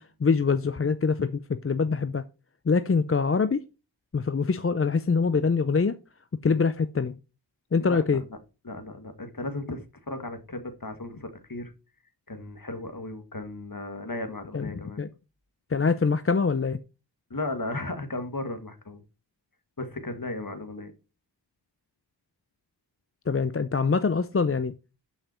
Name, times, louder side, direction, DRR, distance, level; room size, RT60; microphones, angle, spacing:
voice 1, 0.0-2.2 2.7-3.7 4.1-6.0 6.4-7.2 7.7-8.2 14.5-15.1 15.7-16.8 23.3-24.7, left 5 dB, 30° left, 0.5 m, -24 dB
voice 2, 7.8-8.4 8.6-11.7 12.3-15.0 17.3-19.0 19.8-20.9, left 2 dB, 50° left, 1.9 m, -35 dB
11.5 x 5.7 x 4.4 m
wide cardioid pair, 45°, 44 cm